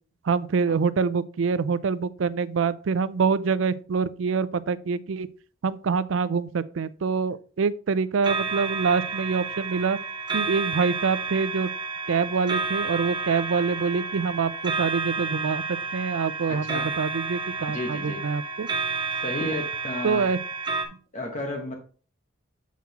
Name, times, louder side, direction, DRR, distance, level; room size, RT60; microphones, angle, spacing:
voice 1, 0.2-5.3 5.6-10.0 10.3-11.7 12.1-18.7 20.0-20.4, right 5 dB, 70° right, 0.4 m, -25 dB
sound 1, 8.2-20.8, right 4 dB, 25° right, 0.9 m, -31 dB
voice 2, 16.5-16.9 17.7-18.2 19.2-20.3 21.1-21.8, left 1 dB, 40° left, 1.0 m, -32 dB
7.3 x 5.7 x 2.9 m
head